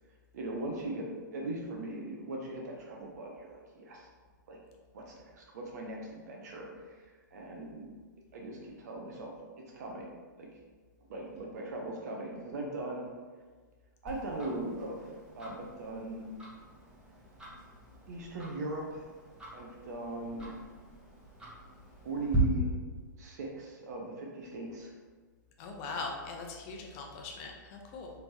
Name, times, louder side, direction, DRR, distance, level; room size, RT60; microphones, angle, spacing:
voice 1, 0.3-1.1 1.3-4.1 4.5-4.6 4.9-7.9 8.3-9.3 9.7-10.1 10.4-10.5 11.1-13.1 14.0-15.1 15.3-16.3 18.1-19.0 19.5-20.6 22.0-22.7 23.2-24.9, right 2 dB, 55° right, -1 dB, 0.6 m, -39 dB
Tick-tock, 14.1-22.4, equal, 10° right, 1.2 m, -44 dB
voice 2, 25.6-28.1, left 3 dB, 35° left, 1 dB, 0.7 m, -41 dB
4.2 x 3.3 x 2.9 m, 1.5 s
figure-of-eight pair, 110°, 11 cm